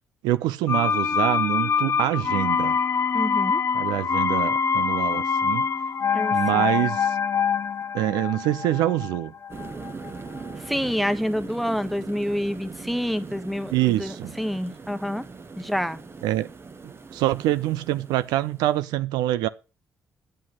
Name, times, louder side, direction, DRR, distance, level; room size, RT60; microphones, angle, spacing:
voice 1, 0.2-2.8 3.7-5.6 6.3-7.2 7.9-9.3 13.7-14.3 16.2-16.5 16.8-19.5, right 14 dB, 70° right, 0.4 m, -25 dB
sound 1, 0.7-10.4 10.7-10.8, left 6 dB, 40° left, 0.4 m, -25 dB
voice 2, 3.1-3.6 6.1-6.7 10.6-15.2 15.6-16.0, equal, ahead, 1.1 m, -28 dB
sound 2, 9.5-18.8, right 4 dB, 35° right, 1.1 m, -41 dB
8.5 x 7.6 x 5.9 m
hypercardioid pair, 45°, 7 cm